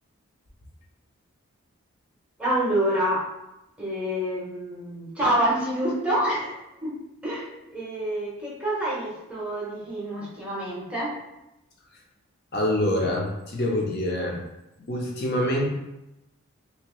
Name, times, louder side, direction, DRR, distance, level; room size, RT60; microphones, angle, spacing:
voice 1, 2.4-3.3 3.8-11.2, right 1 dB, 5° right, -6 dB, 0.8 m, -27 dB
voice 2, 12.5-14.4 14.8-15.7, left 1 dB, 45° left, -1 dB, 0.7 m, -25 dB
2.9 x 2.7 x 3.0 m, 0.92 s
head